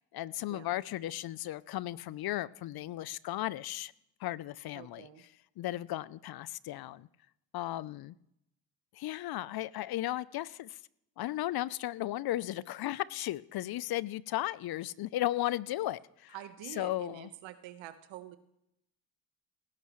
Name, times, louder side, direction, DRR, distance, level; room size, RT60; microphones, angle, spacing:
voice 1, 0.0-3.9 4.2-5.1 5.6-7.1 7.5-8.1 8.9-10.8 11.2-16.3 16.8-17.3, left 15 dB, 55° left, 0.6 m, -35 dB
voice 2, 4.7-5.2 16.3-18.4, right 12 dB, 70° right, 1.3 m, -47 dB
17.0 x 14.5 x 3.1 m
supercardioid pair, 65°, 46 cm